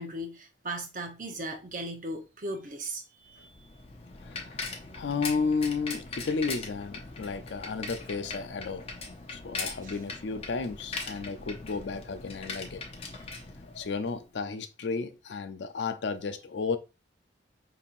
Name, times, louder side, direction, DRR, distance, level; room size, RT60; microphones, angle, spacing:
voice 1, 0.0-3.5 9.8-10.0 11.1-11.3 13.1-13.3, right 1 dB, 45° right, 0.8 m, -38 dB
Bicycle, 3.3-14.2, left 3 dB, 35° left, 0.7 m, -40 dB
voice 2, 4.2-8.9 9.3-12.9 13.7-16.8, left 4 dB, 80° left, 0.5 m, -33 dB
5.3 x 2.9 x 2.5 m
head